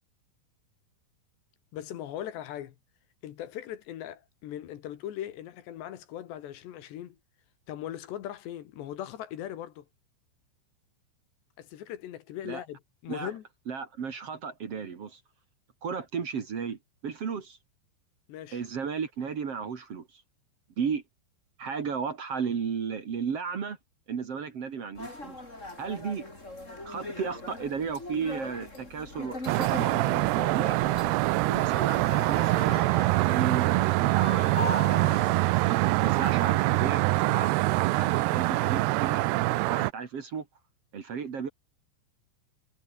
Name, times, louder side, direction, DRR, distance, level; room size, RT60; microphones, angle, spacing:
voice 1, 1.7-2.8 3.2-7.2 7.7-9.9 11.6-13.4 18.3-18.6, left 11 dB, 65° left, 3.6 m, -39 dB
voice 2, 13.7-15.2 15.8-17.6 18.5-20.2 20.8-21.0 21.6-23.8 24.1-25.4 25.8-26.3 26.8-29.4 29.7-30.0 30.5-31.0 31.5-32.8 33.3-35.2 35.6-37.6 37.9-39.2 39.7-40.5 40.9-41.5, right 6 dB, 45° right, 2.1 m, -34 dB
sound 1, 24.9-36.5, left 2 dB, 15° left, 5.8 m, -40 dB
sound 2, 29.5-39.9, right 20 dB, 90° right, 2.3 m, -24 dB
omnidirectional pair, 5.6 m